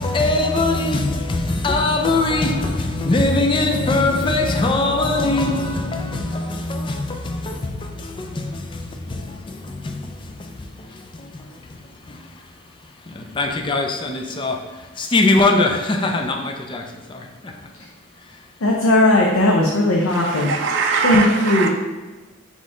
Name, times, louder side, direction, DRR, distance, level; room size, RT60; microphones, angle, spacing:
voice 1, 0.0-12.5 13.0-17.5 18.3-18.4, left 2 dB, 25° left, 0.4 m, -22 dB
voice 2, 18.6-20.5 21.0-21.7, left 1 dB, 80° left, 0.6 m, -17 dB
voice 3, 20.1-21.7, right 5 dB, 60° right, 0.4 m, -22 dB
4.1 x 3.1 x 3.7 m
head